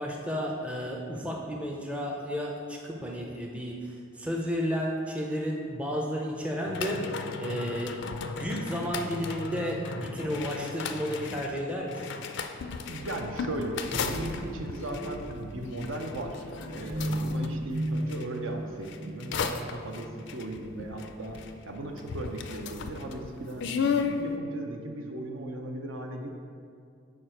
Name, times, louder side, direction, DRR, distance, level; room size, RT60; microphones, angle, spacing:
voice 1, 0.0-12.2, equal, 5° right, -1 dB, 0.5 m, -32 dB
sound 1, 6.6-18.3 18.8-21.7 22.0-24.2, left 6 dB, 55° left, 0.3 m, -35 dB
voice 2, 12.9-26.3, right 1 dB, 70° right, 3 dB, 0.7 m, -37 dB
sound 2, 13.9-20.6 21.0-21.5 22.1-22.2, equal, 25° right, 0.8 m, -36 dB
6.5 x 4.7 x 4.4 m, 2.4 s
head